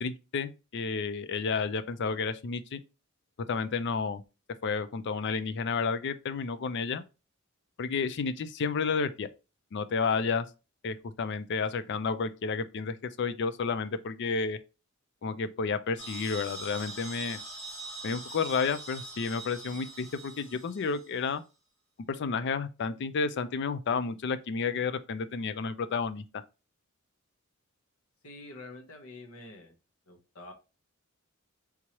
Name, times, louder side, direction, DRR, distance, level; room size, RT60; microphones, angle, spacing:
voice 1, 0.0-2.8 3.5-4.2 4.6-7.0 7.8-9.3 9.7-10.5 10.8-14.6 15.2-17.4 18.0-21.4 22.1-26.4, left 5 dB, 55° left, 0.4 m, -31 dB
sound 1, 16.0-21.2, right 2 dB, 25° left, 1.4 m, -43 dB
voice 2, 28.2-29.7 30.1-30.5, left 2 dB, 85° left, 1.0 m, -47 dB
3.6 x 3.0 x 2.9 m
head